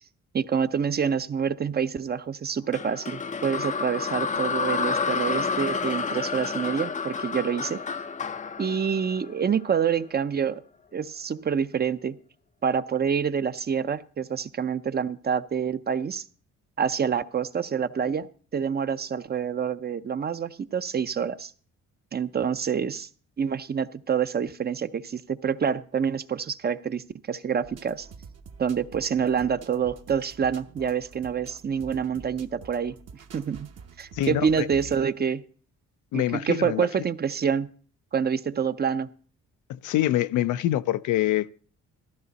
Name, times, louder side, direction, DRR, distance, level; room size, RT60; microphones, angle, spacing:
voice 1, 0.3-7.8 8.6-10.6 10.9-12.2 12.6-16.2 16.8-18.3 18.5-21.5 22.1-23.1 23.4-28.1 28.6-33.0 33.3-33.7 34.0-35.4 36.1-37.7 38.1-39.1, right 7 dB, 35° right, 0.6 m, -27 dB
sound 1, 2.7-9.9, left 5 dB, 25° left, 0.5 m, -30 dB
sound 2, 27.6-35.0, right 5 dB, 55° right, 1.1 m, -47 dB
voice 2, 34.1-34.7 36.1-36.9 39.7-41.5, left 13 dB, 80° left, 0.6 m, -25 dB
14.0 x 12.0 x 4.0 m
cardioid pair, 90°, 30 cm